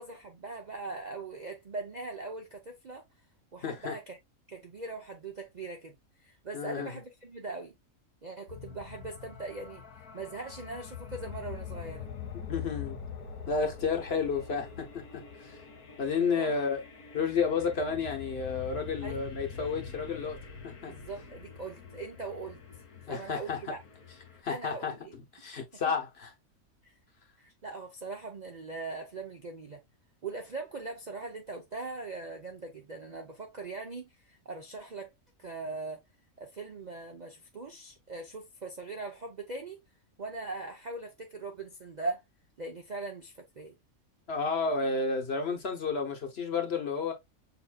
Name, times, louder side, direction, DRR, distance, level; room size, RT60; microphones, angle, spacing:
voice 1, 0.0-3.0 3.5-4.2 4.5-7.7 8.2-12.1 16.3-16.5 19.0-19.2 20.9-22.6 23.1-23.8 24.5-25.1 26.8-26.9 27.4-29.8 30.2-35.1 35.4-36.0 36.4-39.8 40.2-42.2 42.6-43.7, right 3 dB, 45° right, 0.5 m, -40 dB
voice 2, 3.6-3.9 6.5-6.9 12.3-13.0 13.5-15.6 16.0-16.8 17.1-20.4 20.6-20.9 23.1-23.7 24.4-24.9 25.3-26.3 44.3-47.1, left 5 dB, 50° left, 1.1 m, -31 dB
sound 1, 8.5-24.4, left 7 dB, 90° left, 1.5 m, -44 dB
6.9 x 2.7 x 2.2 m
omnidirectional pair, 1.5 m